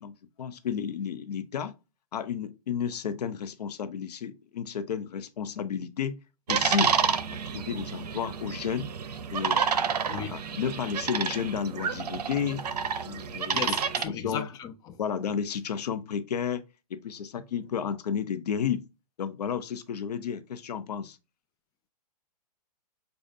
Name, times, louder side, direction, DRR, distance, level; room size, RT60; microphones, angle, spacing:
voice 1, 0.0-1.7 2.1-6.2 6.5-6.9 7.5-8.9 9.3-9.7 10.1-12.6 13.0-13.7 14.1-14.5 15.0-16.6 16.9-18.9 19.2-21.2, left 7 dB, 75° left, 0.7 m, -32 dB
sound 1, 6.5-14.0, right 7 dB, 75° right, 0.6 m, -29 dB
voice 2, 13.5-15.0, left 8 dB, 20° left, 0.5 m, -36 dB
6.6 x 2.3 x 2.6 m
hypercardioid pair, 135°, 21 cm